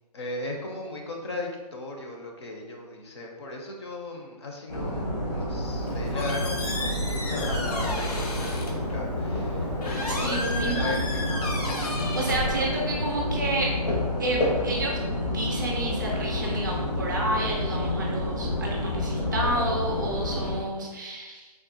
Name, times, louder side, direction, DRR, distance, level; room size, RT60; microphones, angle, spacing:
voice 1, 0.1-11.0 11.4-11.5 12.4-12.7, left 2 dB, 45° left, 1 dB, 0.5 m, -37 dB
sound 1, 4.7-20.6, left 1 dB, 85° left, 1.1 m, -29 dB
Squeak, 5.6-13.1, left 2 dB, 70° left, 0.8 m, -34 dB
voice 2, 10.1-11.5 12.1-13.8 14.2-21.5, right 2 dB, 30° right, -1 dB, 0.4 m, -30 dB
3.5 x 2.3 x 2.6 m, 1.3 s
hypercardioid pair, 160°, 20 cm